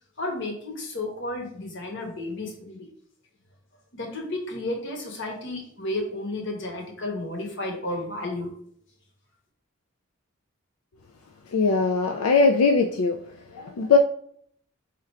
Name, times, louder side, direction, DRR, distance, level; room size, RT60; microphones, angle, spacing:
voice 1, 0.2-2.9 3.9-8.5, left 2 dB, 60° left, 1 dB, 1.1 m, -32 dB
voice 2, 11.5-13.2 13.5-14.0, left 4 dB, 85° left, 5 dB, 0.4 m, -20 dB
4.3 x 2.5 x 4.4 m, 0.62 s
head